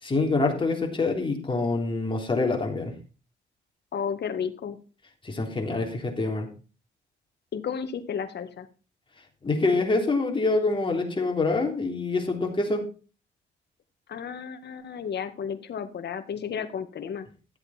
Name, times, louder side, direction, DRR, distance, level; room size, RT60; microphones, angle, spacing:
voice 1, 0.0-2.9 5.2-6.5 9.4-12.8, left 3 dB, 25° left, 1 dB, 3.7 m, -26 dB
voice 2, 3.9-4.8 7.5-8.7 14.1-17.3, left 7 dB, 60° left, 9 dB, 1.8 m, -33 dB
13.5 x 8.0 x 4.4 m, 0.35 s
cardioid pair, 90°, 20 cm